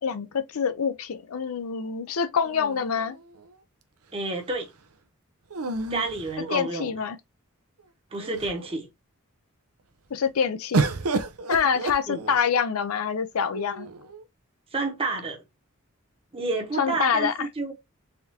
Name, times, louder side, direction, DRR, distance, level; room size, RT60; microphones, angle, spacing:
voice 1, 0.0-3.2 6.5-7.2 10.1-10.9 11.5-13.9 16.8-17.5, left 6 dB, 70° left, 0.5 m, -26 dB
sound 1, 2.4-3.5 5.5-7.0 7.8-7.9 8.2-8.8 10.7-12.6 13.5-14.2, right 3 dB, 75° right, 0.6 m, -31 dB
voice 2, 4.1-4.7 5.9-6.9 8.1-8.9 12.1-12.2 14.7-15.4 16.3-17.7, right 3 dB, 25° right, 0.9 m, -29 dB
3.5 x 3.5 x 2.7 m
head